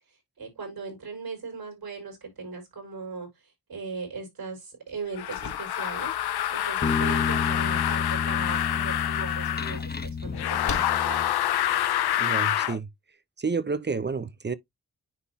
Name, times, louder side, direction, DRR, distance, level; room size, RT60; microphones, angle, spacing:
voice 1, 0.4-6.1 6.5-11.4, right 4 dB, 70° right, 5.5 m, -39 dB
sound 1, 4.9-12.8, left 4 dB, 50° left, 1.3 m, -45 dB
sound 2, 5.2-9.8 10.3-12.8, left 12 dB, 85° left, 0.7 m, -27 dB
sound 3, 6.8-11.7, left 5 dB, 25° left, 1.0 m, -31 dB
voice 2, 12.2-12.9 13.4-14.5, right 4 dB, 30° right, 0.7 m, -29 dB
9.9 x 3.6 x 2.8 m
cardioid pair, 50°, 37 cm